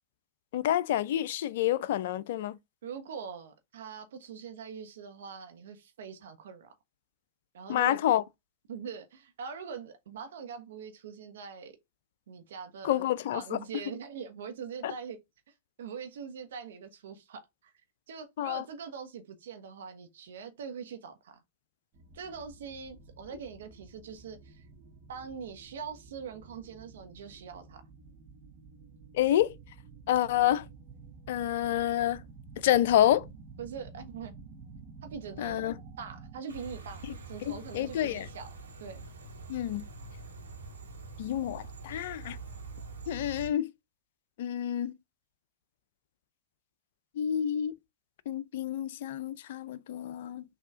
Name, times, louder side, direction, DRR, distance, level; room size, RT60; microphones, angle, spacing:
voice 1, 0.5-2.6 7.7-8.2 12.8-13.6 14.8-14.9 18.4-18.6 29.1-29.5 30.1-30.7 31.3-32.2 32.6-33.3 35.4-35.7 37.7-38.3 39.5-39.9 41.2-42.4 43.1-43.7 44.4-44.9 47.2-47.7 48.3-50.4, left 12 dB, 60° left, 0.4 m, -28 dB
voice 2, 2.8-6.7 7.5-8.0 8.7-11.8 12.3-15.2 15.5-17.7 18.1-21.4 22.1-24.6 25.1-27.8 33.6-34.3 35.0-35.7 36.0-38.5 38.8-39.0, right 6 dB, 65° right, 1.2 m, -43 dB
sound 1, 21.9-36.4, right 4 dB, 45° right, 0.9 m, -51 dB
sound 2, 36.5-43.5, right 3 dB, 85° right, 1.6 m, -45 dB
6.6 x 2.8 x 2.4 m
figure-of-eight pair, 100°, 0 cm